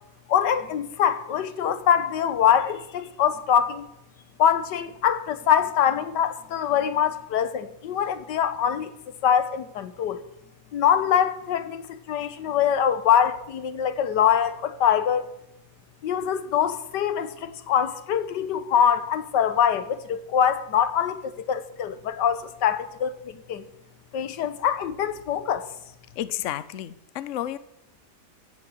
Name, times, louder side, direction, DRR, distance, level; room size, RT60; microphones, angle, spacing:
voice 1, 0.3-3.9 4.4-8.9 9.2-10.2 10.7-15.3 16.0-23.6 24.1-25.7, left 9 dB, 90° left, 1.6 m, -24 dB
voice 2, 26.2-27.6, left 12 dB, 60° left, 0.9 m, -31 dB
15.5 x 7.4 x 7.8 m
omnidirectional pair, 1.8 m